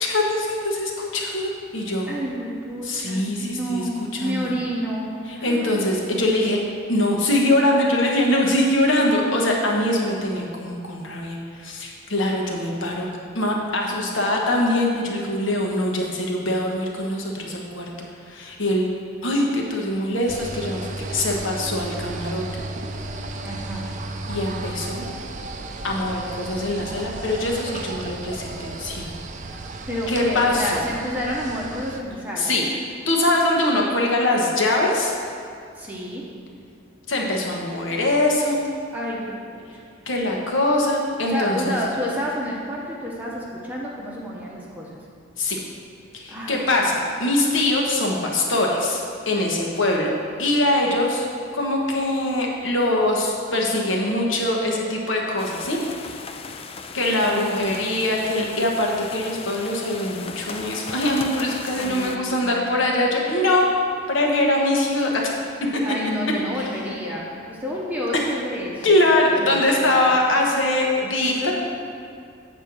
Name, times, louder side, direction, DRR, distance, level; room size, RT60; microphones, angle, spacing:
voice 1, 0.0-2.1 2.8-4.5 5.3-6.6 6.9-13.1 13.3-17.9 18.3-18.9 19.2-22.4 24.3-25.1 25.8-29.1 30.1-30.8 32.4-32.7 33.1-35.1 37.1-38.6 40.1-41.8 45.4-45.6 46.1-50.1 50.4-51.3 51.5-56.1 56.9-63.6 64.1-65.4 66.5-66.6 68.1-68.2 68.8-71.5, left 1 dB, 70° left, -1 dB, 1.3 m, -22 dB
voice 2, 2.1-5.9 23.4-23.9 29.5-29.6 29.9-32.6 35.8-36.2 38.9-39.6 41.3-45.0 46.3-46.6 57.2-57.9 61.8-62.5 65.8-70.1 71.2-71.5, equal, 10° right, -4 dB, 0.8 m, -30 dB
sound 1, 20.3-32.0, right 2 dB, 40° right, 0.5 m, -34 dB
sound 2, 55.4-62.2, left 5 dB, 30° left, 0.3 m, -37 dB
8.1 x 4.4 x 6.1 m, 2.3 s
head